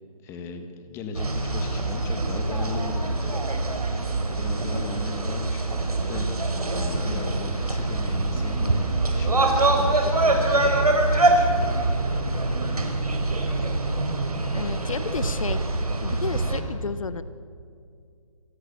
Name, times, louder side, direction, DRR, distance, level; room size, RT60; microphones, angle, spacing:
voice 1, 0.2-3.4 4.3-6.3 6.7-8.9 9.1-10.8 11.3-11.7, left 3 dB, 15° left, 6 dB, 1.7 m, -37 dB
sound 1, 1.1-16.6, right 2 dB, 90° right, 4.8 m, -24 dB
voice 2, 7.1-7.6 14.5-17.2, left 5 dB, 65° left, 13 dB, 1.1 m, -33 dB
sound 2, 8.4-13.6, right 4 dB, 40° right, 4.0 m, -35 dB
27.5 x 19.5 x 7.2 m, 2.3 s
hypercardioid pair, 155°, 19 cm